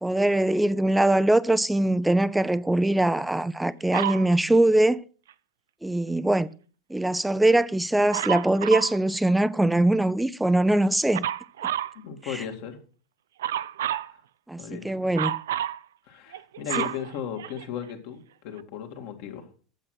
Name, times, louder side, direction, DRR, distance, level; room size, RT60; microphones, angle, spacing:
voice 1, 0.0-5.0 5.8-6.5 6.9-11.3 12.3-12.4 14.5-15.3, right 1 dB, 5° right, 0.6 m, -22 dB
Dog, 3.9-4.3 8.1-9.0 11.1-12.0 13.4-14.1 15.1-15.8 16.3-17.8 18.6-18.7, right 11 dB, 70° right, 0.4 m, -29 dB
voice 2, 12.0-12.8 13.9-14.0 14.6-15.1 16.1-19.5, left 8 dB, 55° left, 2.0 m, -36 dB
8.8 x 7.4 x 6.2 m
hypercardioid pair, 95°, 0 cm